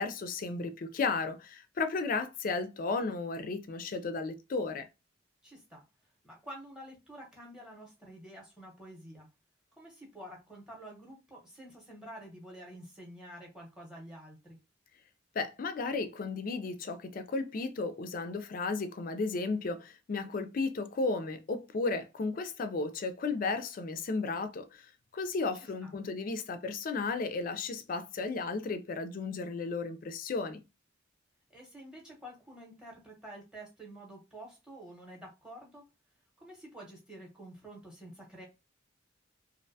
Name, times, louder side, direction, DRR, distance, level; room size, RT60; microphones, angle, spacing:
voice 1, 0.0-4.9 15.4-24.9 25.1-30.6, left 3 dB, 45° left, 0.3 m, -34 dB
voice 2, 5.4-5.8 6.2-9.3 9.8-14.6 25.5-25.9 31.5-35.8 36.4-38.4, right 1 dB, 5° right, 0.8 m, -49 dB
2.5 x 2.1 x 2.6 m
head